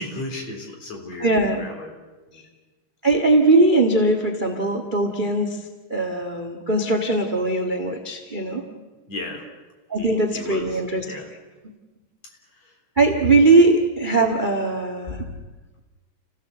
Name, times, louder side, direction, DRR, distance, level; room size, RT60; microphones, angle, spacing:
voice 1, 0.0-1.9 2.3-2.5 9.1-9.4 10.0-11.3 12.6-12.7, left 2 dB, 50° left, 2 dB, 4.6 m, -35 dB
voice 2, 1.2-1.6 3.0-8.7 9.9-11.2 13.0-15.4, right 2 dB, 25° right, 5 dB, 1.1 m, -20 dB
29.5 x 16.5 x 7.8 m, 1.2 s
omnidirectional pair, 3.9 m